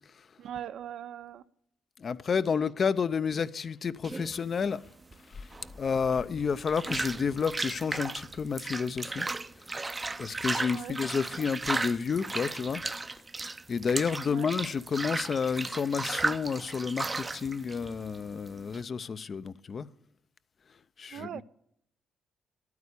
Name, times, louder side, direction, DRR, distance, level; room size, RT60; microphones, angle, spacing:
voice 1, 0.4-1.4 10.7-11.0 14.3-14.5 21.1-21.4, right 10 dB, 70° right, 0.5 m, -40 dB
voice 2, 2.0-4.9 5.3-5.5 5.8-9.3 10.2-12.8 13.7-19.9 21.0-21.4, left 6 dB, 45° left, 0.5 m, -30 dB
sound 1, 4.0-18.8, right 3 dB, 20° right, 0.6 m, -35 dB
12.0 x 9.5 x 8.3 m
cardioid pair, 90°, 0 cm